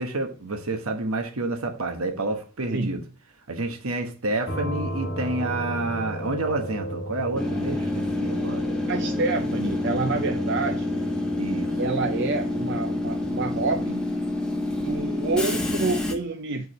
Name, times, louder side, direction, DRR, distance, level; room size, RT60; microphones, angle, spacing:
voice 1, 0.0-3.0 3.5-8.7 11.4-11.7, right 2 dB, 75° right, 1.1 m, -29 dB
sound 1, 4.5-14.0, equal, 45° left, 1.0 m, -35 dB
Train / Subway metro underground, 7.4-16.1, left 2 dB, 5° left, 0.8 m, -28 dB
voice 2, 8.9-10.9 11.8-14.1 14.8-16.7, right 3 dB, 50° right, 0.5 m, -28 dB
4.8 x 4.7 x 5.5 m
head